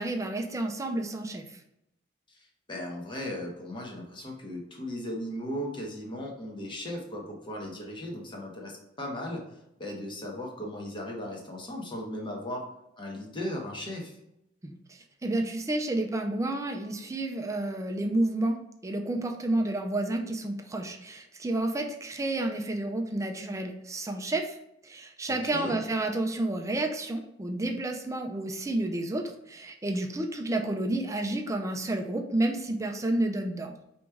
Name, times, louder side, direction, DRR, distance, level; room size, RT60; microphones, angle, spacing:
voice 1, 0.0-1.6 14.6-24.6 24.8-33.7, right 2 dB, 15° right, 3 dB, 0.5 m, -30 dB
voice 2, 2.3-9.4 9.8-12.7 13.0-14.2 25.3-25.8, left 1 dB, 25° left, -1 dB, 1.1 m, -37 dB
4.8 x 3.0 x 3.4 m, 0.82 s
head